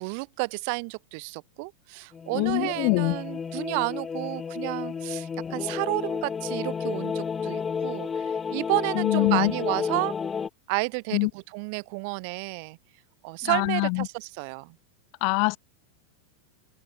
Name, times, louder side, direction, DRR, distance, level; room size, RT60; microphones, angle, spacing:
voice 1, 0.0-10.2 10.7-12.8 13.2-14.8, right 33 dB, 45° right, 0.5 m, -31 dB
sound 1, 2.1-10.5, left 6 dB, 20° left, 1.4 m, -31 dB
voice 2, 2.3-3.2 9.0-9.5 11.1-11.3 13.4-14.1 15.2-15.6, left 38 dB, 45° left, 0.5 m, -24 dB
figure-of-eight pair, 90°, 0 cm